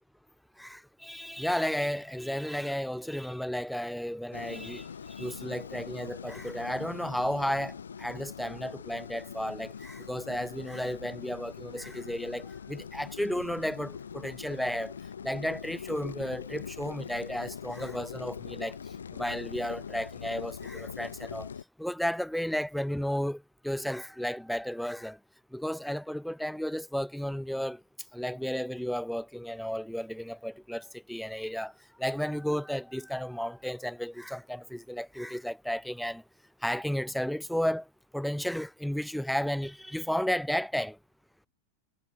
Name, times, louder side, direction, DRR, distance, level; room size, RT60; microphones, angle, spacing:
voice 1, 0.6-14.9 15.2-18.8 19.1-21.5 21.8-25.2 25.5-27.8 28.1-31.7 32.0-36.2 36.6-37.9 38.1-41.0, equal, ahead, 0.9 m, -33 dB
sound 1, 4.3-21.6, left 7 dB, 70° left, 2.7 m, -42 dB
figure-of-eight pair, 90°, 0 cm